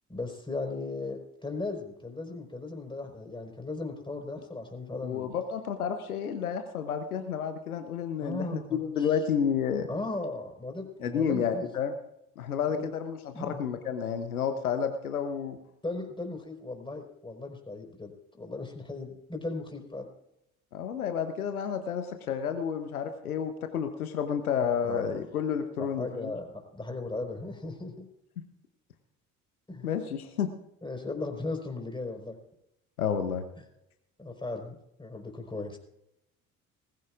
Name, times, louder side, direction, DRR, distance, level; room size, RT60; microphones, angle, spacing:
voice 1, 0.1-5.3 8.2-9.1 9.9-11.7 12.7-12.9 13.3-13.6 15.8-20.1 24.8-25.3 25.8-28.1 29.7-29.9 30.8-32.4 33.6-33.7 34.2-35.8, left 2 dB, 10° left, 3 dB, 4.4 m, -37 dB
voice 2, 5.0-9.9 11.0-11.9 12.4-15.6 20.7-26.3 29.8-30.5 33.0-33.5, left 7 dB, 85° left, 8 dB, 0.9 m, -30 dB
19.5 x 15.5 x 2.5 m, 0.84 s
figure-of-eight pair, 55°, 43 cm